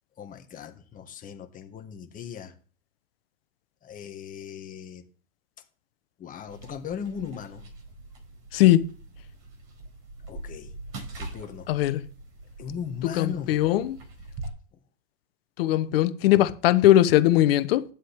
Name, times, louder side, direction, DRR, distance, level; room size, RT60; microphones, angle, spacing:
voice 1, 0.2-2.5 3.8-5.0 6.2-7.6 10.3-10.7 11.2-11.7 12.6-13.6, left 7 dB, 25° left, 1.7 m, -38 dB
sound 1, 6.5-14.5, right 2 dB, 40° right, 4.9 m, -43 dB
voice 2, 8.5-8.8 11.7-12.0 13.1-14.0 15.6-17.8, left 14 dB, 60° left, 1.0 m, -20 dB
10.5 x 7.5 x 3.6 m
hypercardioid pair, 120°, 33 cm